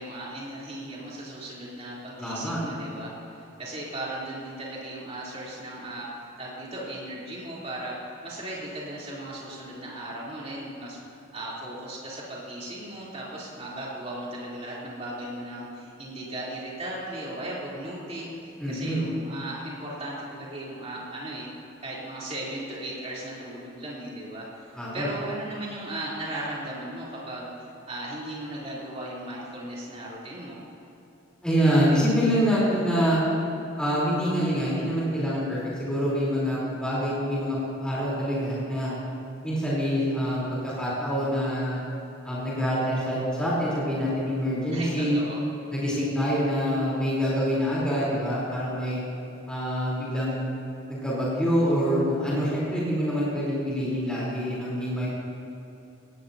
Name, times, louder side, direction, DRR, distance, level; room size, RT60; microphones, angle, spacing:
voice 1, 0.0-21.5 21.8-24.7 24.9-27.5 27.9-30.6 44.7-45.4, right 1 dB, 30° right, -6 dB, 3.6 m, -36 dB
voice 2, 2.2-2.6 18.6-19.1 24.7-25.1 31.4-33.2 33.8-39.0 39.4-41.8 42.2-45.2 45.7-49.0 49.5-50.5 50.9-55.1, equal, 5° left, -9 dB, 3.8 m, -26 dB
18.5 x 17.5 x 2.9 m, 2.9 s
head